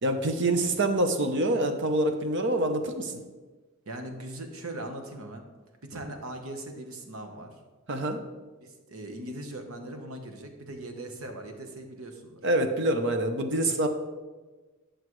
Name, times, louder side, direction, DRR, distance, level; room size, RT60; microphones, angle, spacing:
voice 1, 0.0-3.1 7.9-8.2 12.4-13.9, right 1 dB, 60° right, 6 dB, 0.8 m, -26 dB
voice 2, 3.9-5.4 5.8-7.5 8.6-12.5 13.5-13.9, right 1 dB, 85° right, 4 dB, 1.1 m, -40 dB
11.0 x 6.4 x 3.2 m, 1.3 s
head